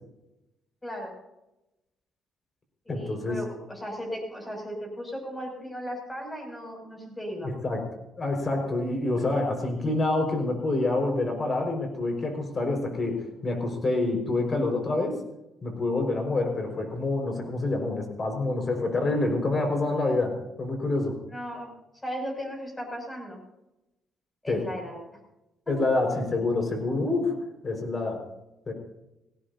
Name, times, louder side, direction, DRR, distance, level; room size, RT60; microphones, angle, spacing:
voice 1, 0.8-1.1 2.8-7.5 21.3-21.7 22.0-23.4 24.4-25.0 25.6-25.7, equal, 15° left, 1 dB, 6.7 m, -36 dB
voice 2, 2.9-3.4 7.4-7.8 8.2-15.2 15.6-21.2 24.5-24.6 25.7-27.3 27.6-28.2 28.7-28.8, left 2 dB, 35° left, 3 dB, 5.0 m, -27 dB
19.0 x 17.5 x 2.8 m, 0.93 s
cardioid pair, 90°, 0 cm